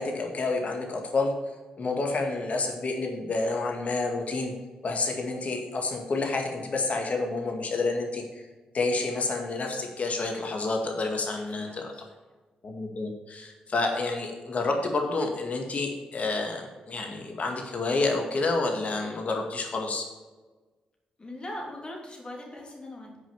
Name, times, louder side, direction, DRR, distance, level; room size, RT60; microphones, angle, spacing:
voice 1, 0.0-1.3 1.8-4.5 4.8-8.2 8.7-11.9 12.6-20.1, left 3 dB, 50° left, 3 dB, 2.0 m, -29 dB
voice 2, 11.6-12.0 21.2-23.2, left 1 dB, 35° left, -1 dB, 3.0 m, -40 dB
7.3 x 5.5 x 7.0 m, 1.3 s
supercardioid pair, 45°, 3 cm